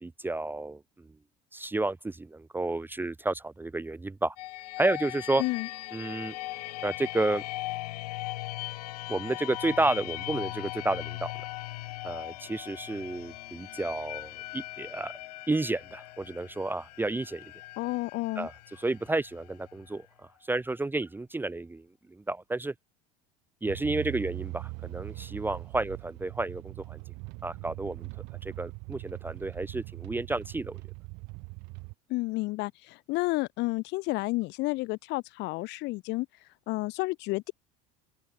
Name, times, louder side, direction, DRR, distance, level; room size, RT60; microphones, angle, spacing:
voice 1, 0.0-0.8 1.5-4.4 4.8-5.4 5.9-6.3 6.8-7.4 9.1-11.3 12.0-15.1 15.5-17.5 18.4-18.5 18.8-20.1 20.5-22.7 23.6-27.0 27.4-28.1 28.4-30.8, right 2 dB, 10° right, 0.8 m, -31 dB
sound 1, 4.4-20.0, left 17 dB, 90° left, 1.4 m, -39 dB
voice 2, 5.4-5.7 17.8-18.5 32.1-36.3 36.7-37.5, left 22 dB, 65° left, 1.9 m, -31 dB
sound 2, 23.6-31.9, right 29 dB, 65° right, 0.6 m, -41 dB
open air
supercardioid pair, 100°, 19 cm